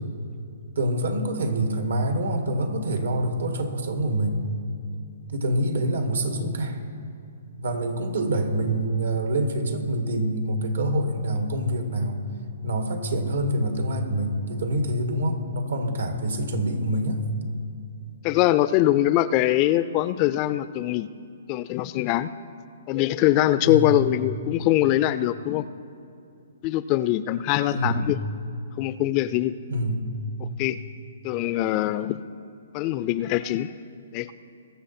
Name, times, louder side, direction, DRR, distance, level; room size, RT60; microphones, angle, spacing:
voice 1, 0.8-4.4 5.3-6.8 7.6-12.2 12.6-17.2 23.7-24.0 27.7-28.0 29.7-30.1, right 1 dB, 85° right, 5 dB, 1.9 m, -26 dB
voice 2, 18.2-21.1 21.5-22.3 22.9-25.7 26.6-28.2 28.8-29.5 30.4-30.8 31.2-32.2 32.7-33.7 34.1-34.3, left 14 dB, 30° left, 15 dB, 0.4 m, -23 dB
21.5 x 7.1 x 4.4 m, 2.5 s
hypercardioid pair, 145°, 0 cm